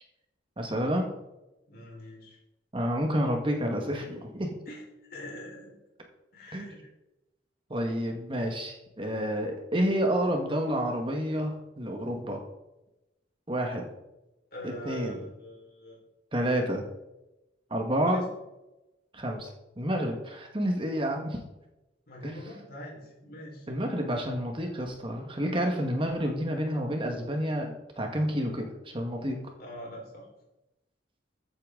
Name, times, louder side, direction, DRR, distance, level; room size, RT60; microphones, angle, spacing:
voice 1, 0.6-1.1 2.7-4.5 6.5-6.7 7.7-12.4 13.5-13.9 14.6-15.2 16.3-16.8 17.7-18.2 19.1-19.5 19.8-21.4 22.2-22.3 23.7-29.4, equal, 30° right, 2 dB, 1.6 m, -29 dB
voice 2, 1.7-2.4 4.7-4.8 5.1-5.7 6.3-6.8 14.5-16.0 18.0-18.2 22.1-23.7 26.2-26.3 29.6-30.2, left 1 dB, 55° left, -2 dB, 4.6 m, -43 dB
14.5 x 8.8 x 3.9 m, 0.94 s
head